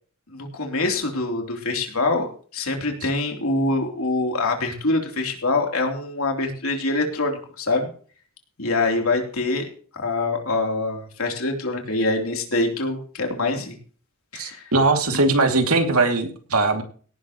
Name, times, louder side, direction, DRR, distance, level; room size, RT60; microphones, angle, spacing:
voice 1, 0.3-7.9 8.6-9.7 10.0-13.8 14.3-14.7, left 2 dB, 70° left, 2 dB, 3.4 m, -24 dB
voice 2, 14.4-16.8, right 3 dB, 85° right, 5 dB, 2.6 m, -20 dB
17.5 x 11.5 x 3.1 m, 0.42 s
head